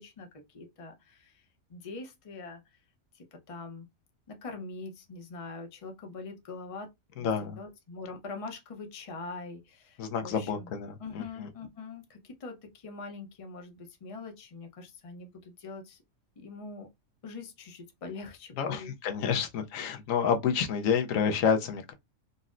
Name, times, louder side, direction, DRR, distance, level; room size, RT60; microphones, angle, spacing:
voice 1, 0.0-1.4 1.7-2.6 3.1-3.9 4.3-6.9 7.2-7.3 7.6-10.7 11.0-16.0 16.4-16.9 17.2-18.9, left 3 dB, 35° left, 0.6 m, -43 dB
voice 2, 7.2-7.6 10.0-11.5 18.6-21.9, left 7 dB, 85° left, 1.0 m, -29 dB
3.9 x 2.0 x 2.4 m
omnidirectional pair, 1.3 m